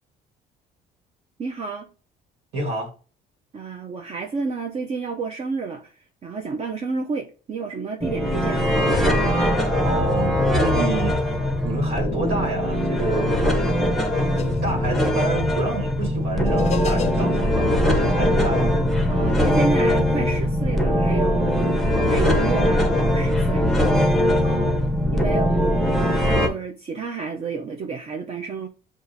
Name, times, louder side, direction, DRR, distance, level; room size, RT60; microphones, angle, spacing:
voice 1, 1.4-1.9 3.5-8.9 19.1-23.7 24.2-24.8 25.1-28.7, right 4 dB, 40° right, 0.5 m, -31 dB
voice 2, 2.5-2.9 9.8-11.2 11.6-13.4 14.1-18.8, right 2 dB, 85° right, 1.5 m, -28 dB
sound 1, 8.0-26.5, equal, ahead, 0.7 m, -21 dB
sound 2, 14.2-19.3, left 8 dB, 40° left, 0.5 m, -35 dB
6.3 x 2.5 x 2.6 m
cardioid pair, 110°, 17 cm